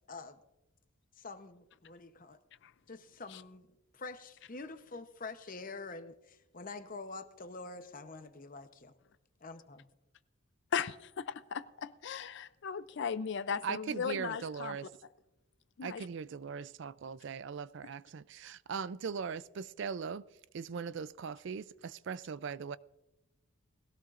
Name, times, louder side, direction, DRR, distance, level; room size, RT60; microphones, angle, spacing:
voice 1, 0.1-0.4 1.2-2.4 2.9-3.7 3.9-8.9 9.4-9.9, left 3 dB, 40° left, 0.8 m, -46 dB
voice 2, 10.7-14.8 15.8-16.1, left 6 dB, 55° left, 0.4 m, -37 dB
voice 3, 13.6-14.9 15.8-20.3 20.5-22.8, right 6 dB, 55° right, 0.4 m, -40 dB
20.5 x 17.0 x 2.5 m
head